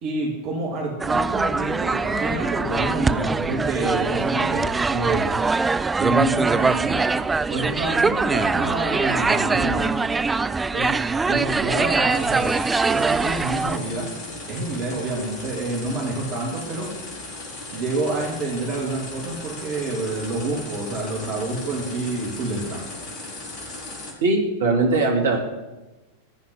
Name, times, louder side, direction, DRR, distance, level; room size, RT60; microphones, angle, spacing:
voice 1, 0.0-5.3 6.0-7.0 7.5-9.9 10.7-11.0 11.2-12.5 12.8-14.1 14.5-16.9 17.7-22.8, right 2 dB, 40° right, -2 dB, 3.0 m, -27 dB
sound 1, 1.0-13.8, right 4 dB, 10° right, 0.4 m, -23 dB
sound 2, 12.1-24.1, left 2 dB, 40° left, 3.5 m, -37 dB
voice 2, 24.2-25.4, right 3 dB, 60° right, 2 dB, 2.8 m, -20 dB
14.5 x 5.7 x 9.5 m, 1.1 s
figure-of-eight pair, 90°, 0 cm